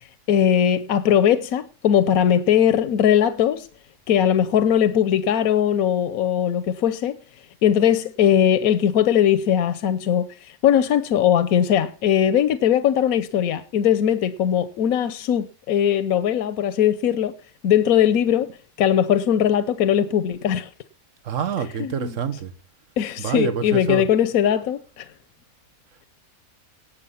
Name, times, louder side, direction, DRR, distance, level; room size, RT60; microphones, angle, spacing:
voice 1, 0.3-3.7 4.1-7.2 7.6-17.3 17.6-18.5 18.8-20.7 21.8-22.2 23.0-25.1, left 9 dB, 85° left, 1.2 m, -20 dB
voice 2, 21.2-22.5 23.2-24.0, right 7 dB, 65° right, 1.5 m, -26 dB
18.0 x 6.5 x 5.6 m
omnidirectional pair, 1.5 m